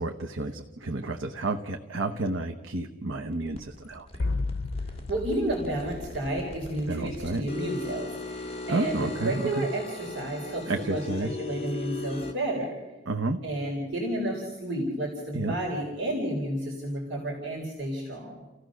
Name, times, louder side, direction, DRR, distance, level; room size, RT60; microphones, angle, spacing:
voice 1, 0.0-4.1 6.9-7.4 8.7-9.7 10.7-11.3 13.1-13.4 15.3-15.5, right 2 dB, 90° right, 4 dB, 1.1 m, -31 dB
sound 1, 3.3-12.3, left 2 dB, 30° left, 2.0 m, -39 dB
sound 2, 4.2-7.1, left 3 dB, 80° left, 0.7 m, -33 dB
voice 2, 5.1-12.8 13.4-18.3, right 1 dB, 65° right, -1 dB, 4.1 m, -31 dB
30.0 x 15.5 x 6.3 m, 1.2 s
head